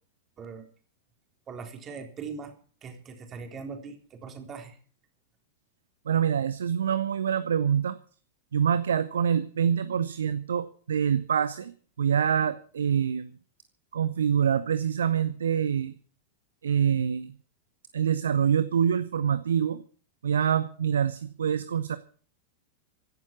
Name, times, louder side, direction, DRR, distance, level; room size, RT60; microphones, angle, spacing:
voice 1, 1.5-2.5 2.8-4.8, right 5 dB, 25° right, 4 dB, 3.8 m, -40 dB
voice 2, 6.1-8.0 8.5-11.7 12.0-13.3 13.9-15.9 16.6-17.3 17.9-19.8 20.2-22.0, right 8 dB, 65° right, 14 dB, 0.8 m, -25 dB
16.5 x 12.0 x 6.1 m, 0.44 s
figure-of-eight pair, 90°, 0 cm